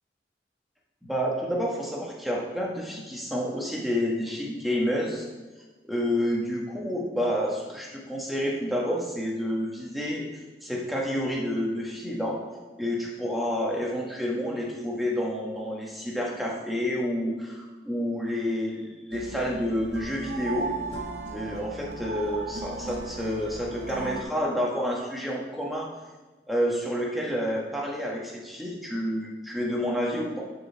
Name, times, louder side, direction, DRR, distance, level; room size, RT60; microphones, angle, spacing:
voice 1, 1.0-5.3 5.9-10.2 10.6-12.4 12.8-20.7 21.3-25.9 26.5-30.4, equal, ahead, -3 dB, 1.2 m, -29 dB
sound 1, 19.1-24.2, right 3 dB, 70° right, 0.8 m, -36 dB
12.0 x 4.7 x 3.4 m, 1.2 s
head